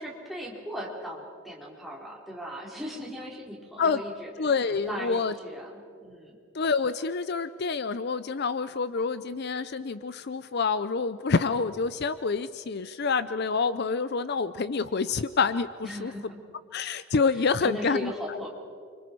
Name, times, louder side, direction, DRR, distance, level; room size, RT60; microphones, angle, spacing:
voice 1, 0.0-4.5 4.8-6.4 15.8-16.4 17.3-18.5, equal, ahead, -4 dB, 4.1 m, -38 dB
voice 2, 4.4-5.3 6.5-16.1 16.7-18.4, left 4 dB, 50° left, 14 dB, 0.5 m, -27 dB
29.0 x 25.5 x 4.7 m, 2.4 s
head